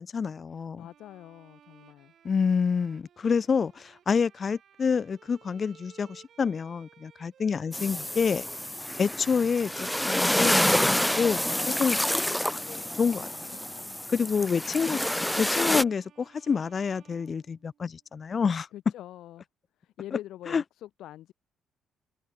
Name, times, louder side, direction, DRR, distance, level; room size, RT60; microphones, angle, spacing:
voice 1, 0.0-0.9 2.2-8.5 9.0-13.3 14.1-15.0 15.4-18.7 20.5-20.6, left 6 dB, 40° left, 0.9 m, -28 dB
voice 2, 0.5-2.1 13.3-14.8 18.7-19.4 19.8-21.3, left 13 dB, 85° left, 1.6 m, -46 dB
Bowed string instrument, 0.8-18.0, right 9 dB, 60° right, 4.7 m, -58 dB
sound 1, 7.7-15.8, left 1 dB, 5° left, 1.2 m, -28 dB
cardioid pair, 90°, 0 cm